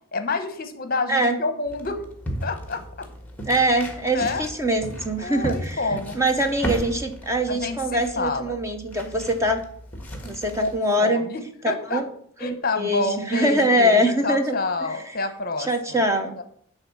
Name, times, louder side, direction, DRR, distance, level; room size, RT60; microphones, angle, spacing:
voice 1, 0.1-2.0 2.4-3.1 4.1-4.5 5.2-6.2 7.5-8.5 10.6-10.7 11.0-12.0 12.4-16.0 16.4-16.5, left 3 dB, 45° left, 8 dB, 0.9 m, -28 dB
sound 1, 1.7-10.8, equal, 10° left, 1.4 m, -35 dB
voice 2, 3.5-5.9 6.1-9.6 10.2-11.2 11.9-12.0 12.4-14.6 15.6-16.4, right 1 dB, 15° right, 5 dB, 0.7 m, -23 dB
10.5 x 4.0 x 7.1 m, 0.65 s
head